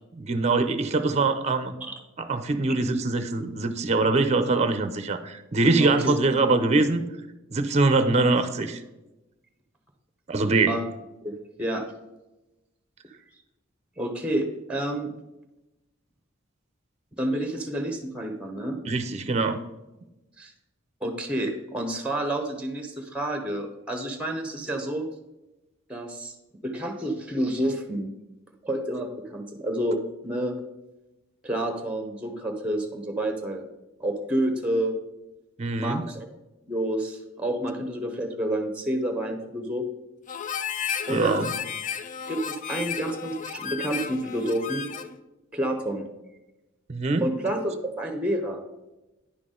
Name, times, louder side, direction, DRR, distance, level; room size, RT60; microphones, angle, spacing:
voice 1, 0.1-1.7 2.2-7.0 7.5-8.8 10.3-10.8 18.9-19.6 35.6-36.0 41.1-41.5 46.9-47.3, right 3 dB, 35° right, 10 dB, 0.6 m, -23 dB
voice 2, 5.8-6.2 10.7-10.8 11.2-11.8 14.0-15.1 17.2-18.8 20.4-20.5 21.0-25.1 25.9-26.3 26.6-28.1 28.6-30.6 31.4-33.6 34.0-34.9 35.8-36.3 36.7-39.9 41.1-41.3 42.3-44.9 45.5-46.1 47.2-48.6, right 1 dB, 5° right, 5 dB, 0.9 m, -29 dB
Harmonica, 40.3-45.2, left 7 dB, 40° left, 0.4 m, -33 dB
10.0 x 6.0 x 3.8 m, 1.0 s
head